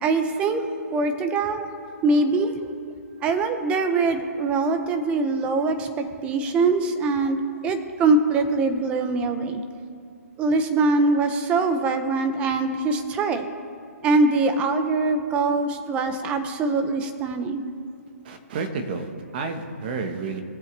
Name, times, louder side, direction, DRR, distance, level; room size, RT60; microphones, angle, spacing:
voice 1, 0.0-1.7 2.0-2.7 3.2-9.6 10.4-13.5 14.0-17.6, right 3 dB, 15° right, 7 dB, 0.7 m, -23 dB
voice 2, 18.2-20.4, right 4 dB, 40° right, 6 dB, 1.3 m, -30 dB
19.5 x 7.5 x 3.4 m, 2.3 s
hypercardioid pair, 160°, 9 cm